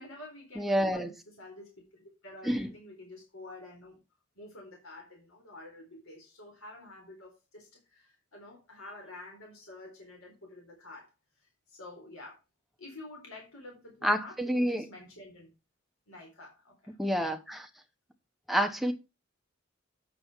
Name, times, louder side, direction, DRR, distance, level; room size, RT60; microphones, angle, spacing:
voice 1, 0.0-4.0 4.4-11.1 11.4-12.4 12.8-15.5 16.1-16.9, left 2 dB, 90° left, 4.1 m, -49 dB
voice 2, 0.6-1.1 2.4-2.7 14.0-14.8 17.0-17.7 18.5-18.9, equal, ahead, 1.0 m, -28 dB
8.4 x 7.0 x 4.5 m
head